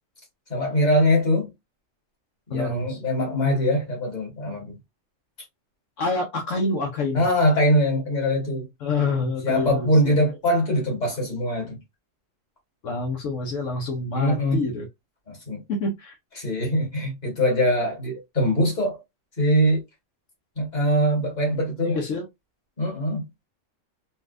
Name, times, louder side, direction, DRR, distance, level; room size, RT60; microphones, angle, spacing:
voice 1, 0.5-1.5 2.5-4.8 7.1-8.7 9.4-11.8 14.1-14.6 15.3-15.6 16.4-19.0 19.4-19.8 20.6-22.0 22.8-23.2, equal, 35° left, 1.6 m, -22 dB
voice 2, 2.5-3.0 6.0-7.2 8.8-10.2 12.8-14.9 15.7-16.1 21.8-22.3, left 3 dB, 75° left, 1.1 m, -27 dB
4.2 x 2.3 x 2.4 m
omnidirectional pair, 1.3 m